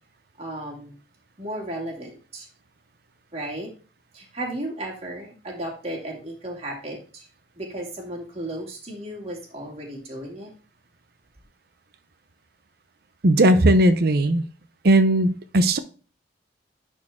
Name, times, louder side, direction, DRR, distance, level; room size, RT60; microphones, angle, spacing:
voice 1, 0.4-0.9 1.4-2.5 3.3-3.7 4.1-7.3 7.6-10.5, right 1 dB, 35° right, 2.5 m, -34 dB
voice 2, 13.2-14.4 14.8-15.8, right 1 dB, 60° right, 0.7 m, -17 dB
10.5 x 4.5 x 3.6 m
head